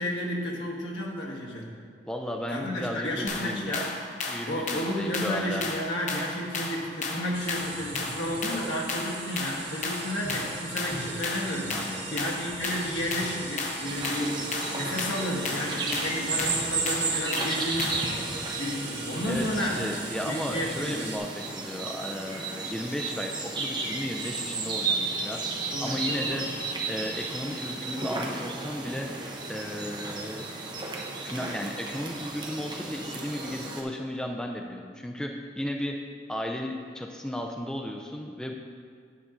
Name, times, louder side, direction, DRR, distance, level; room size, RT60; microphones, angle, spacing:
voice 1, 0.0-1.7 2.5-3.9 4.5-18.0 18.5-19.8 20.2-21.2 25.7-26.4, left 1 dB, 85° left, -2 dB, 1.4 m, -32 dB
voice 2, 2.0-3.9 4.3-5.7 11.7-12.2 19.3-26.4 26.9-29.1 29.5-30.5 31.2-36.0 36.3-38.5, equal, 5° left, 2 dB, 0.4 m, -34 dB
sound 1, 3.3-18.2, left 3 dB, 40° left, 0.7 m, -34 dB
sound 2, 7.3-21.2, right 3 dB, 80° right, 1.8 m, -39 dB
sound 3, 13.9-33.8, right 3 dB, 25° right, 0.7 m, -33 dB
9.4 x 6.0 x 3.8 m, 2.1 s
head